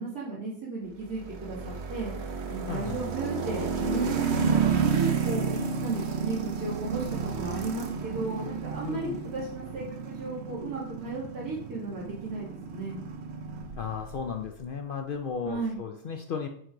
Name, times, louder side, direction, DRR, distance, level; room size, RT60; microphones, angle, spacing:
voice 1, 0.0-2.1 2.5-5.4 5.8-7.0 7.3-13.0 15.5-15.8, right 3 dB, 80° right, -10 dB, 3.0 m, -35 dB
sound 1, 1.1-14.2, right 6 dB, 55° right, 0.9 m, -31 dB
voice 2, 2.7-3.0 8.8-9.2 13.8-16.5, left 6 dB, 85° left, 4 dB, 0.4 m, -34 dB
8.2 x 4.5 x 3.8 m, 0.65 s
omnidirectional pair, 1.6 m